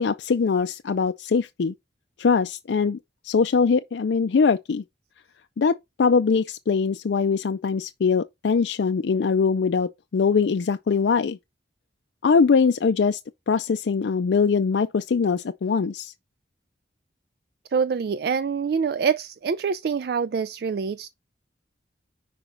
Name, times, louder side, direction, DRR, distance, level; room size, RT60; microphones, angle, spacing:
voice 1, 0.0-1.7 2.2-3.0 3.2-4.8 5.6-11.4 12.2-13.2 13.5-16.1, left 5 dB, 75° left, 0.4 m, -22 dB
voice 2, 17.7-21.1, right 6 dB, 55° right, 0.3 m, -25 dB
5.7 x 5.0 x 3.8 m
head